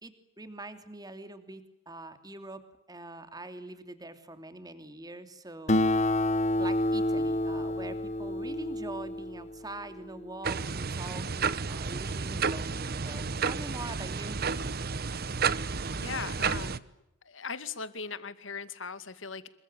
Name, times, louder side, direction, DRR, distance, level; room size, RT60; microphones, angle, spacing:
voice 1, 0.0-2.6 2.9-6.3 6.6-14.4, right 2 dB, 20° right, 9 dB, 2.9 m, -44 dB
Acoustic guitar, 5.7-10.5, left 1 dB, 35° left, 1.3 m, -29 dB
sound 1, 10.4-16.8, right 5 dB, 50° right, 1.1 m, -31 dB
voice 2, 15.9-16.9 17.3-19.5, left 5 dB, 80° left, 12 dB, 2.4 m, -39 dB
27.5 x 23.5 x 9.1 m, 0.85 s
head